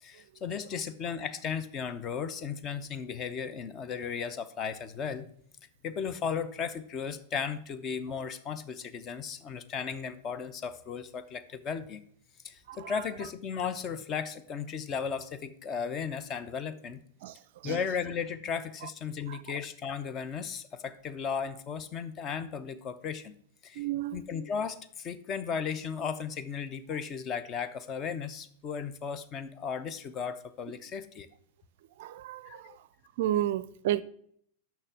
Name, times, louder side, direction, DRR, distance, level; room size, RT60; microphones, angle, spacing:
voice 1, 0.0-5.3 5.8-12.0 12.4-17.0 17.6-23.3 23.6-23.8 24.1-31.3 32.5-32.8, left 6 dB, 30° left, 0.7 m, -35 dB
voice 2, 23.8-24.2 32.0-32.4 33.2-34.0, right 13 dB, 55° right, 0.4 m, -30 dB
6.6 x 5.8 x 7.1 m
figure-of-eight pair, 95°, 0 cm